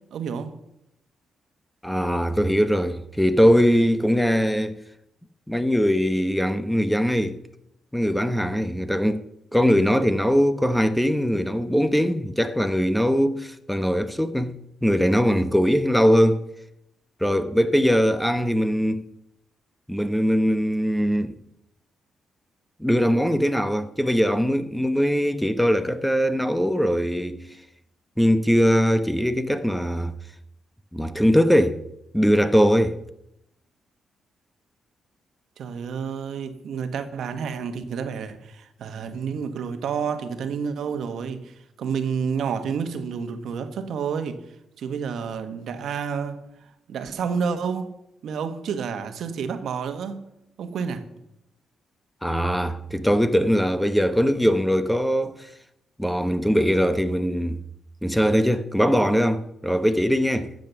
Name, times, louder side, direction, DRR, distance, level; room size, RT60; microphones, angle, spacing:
voice 1, 0.1-0.5 35.6-44.4 44.8-46.5 46.9-48.0 48.2-50.2 50.6-51.1, right 6 dB, 75° right, 1.3 m, -29 dB
voice 2, 1.8-4.8 5.5-7.4 7.9-9.3 9.5-16.4 17.2-19.1 19.9-21.3 22.8-27.6 28.2-30.1 30.9-31.8 32.1-33.0 52.2-55.5 56.0-57.6 58.0-60.5, equal, 5° left, 0.9 m, -21 dB
13.5 x 7.8 x 7.0 m
cardioid pair, 90°, 0 cm